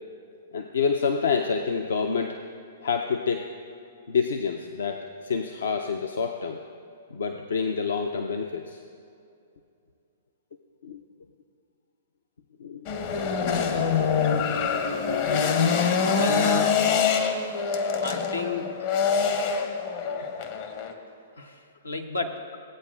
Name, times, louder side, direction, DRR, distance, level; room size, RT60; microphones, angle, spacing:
voice 1, 0.5-2.4 2.8-3.5 4.1-6.6 7.1-8.8 10.8-11.0 12.6-12.9 18.4-18.6, left 5 dB, 70° left, 5 dB, 0.5 m, -27 dB
sound 1, 12.8-20.9, left 6 dB, 45° left, 0.9 m, -25 dB
voice 2, 16.0-16.8 18.0-18.7 21.4-21.6 21.8-22.4, left 2 dB, 90° left, 3 dB, 0.9 m, -31 dB
16.0 x 8.7 x 2.4 m, 2.5 s
figure-of-eight pair, 110°, 0 cm